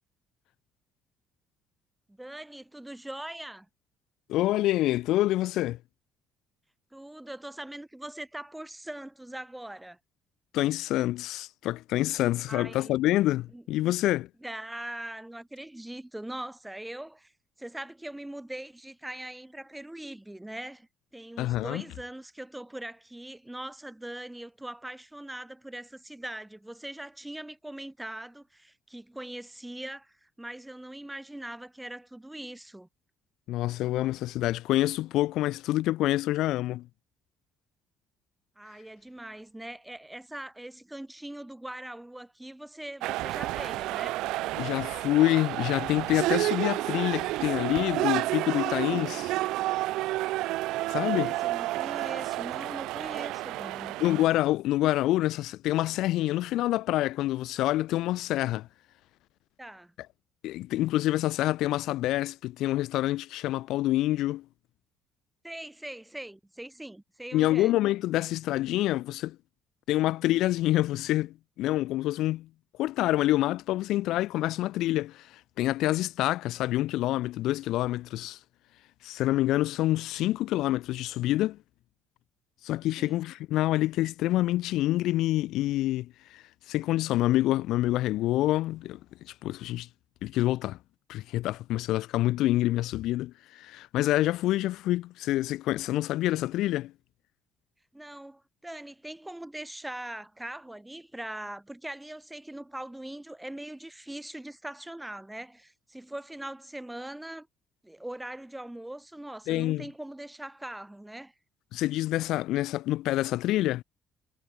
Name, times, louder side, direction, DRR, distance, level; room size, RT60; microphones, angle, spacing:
voice 1, 2.1-3.7 6.9-10.0 12.5-13.0 13.5-13.6 14.4-17.3 17.6-32.9 38.6-44.2 50.9-54.0 59.6-59.9 65.4-67.8 83.0-83.2 97.9-107.5 107.8-111.3, right 1 dB, 5° right, 5.7 m, -41 dB
voice 2, 4.3-5.8 10.5-14.3 21.4-21.8 33.5-36.9 44.6-49.3 50.9-51.3 54.0-58.7 60.4-64.4 67.3-69.4 69.9-72.5 72.8-78.4 79.0-81.6 82.6-89.0 89.2-89.9 90.2-90.8 91.1-96.9 109.5-109.9 111.7-113.8, left 15 dB, 80° left, 0.8 m, -27 dB
sound 1, 43.0-54.2, right 17 dB, 85° right, 1.1 m, -30 dB
cardioid pair, 110°, 0 cm